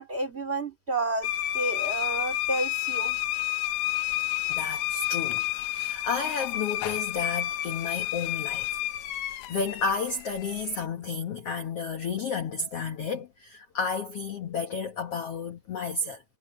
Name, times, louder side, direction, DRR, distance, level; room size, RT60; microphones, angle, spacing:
voice 1, 0.0-3.2, right 2 dB, 15° right, 4.1 m, -31 dB
sound 1, 1.2-10.8, left 14 dB, 75° left, 1.7 m, -30 dB
voice 2, 4.5-8.7 9.2-16.2, left 5 dB, 55° left, 1.8 m, -32 dB
omnidirectional pair, 4.1 m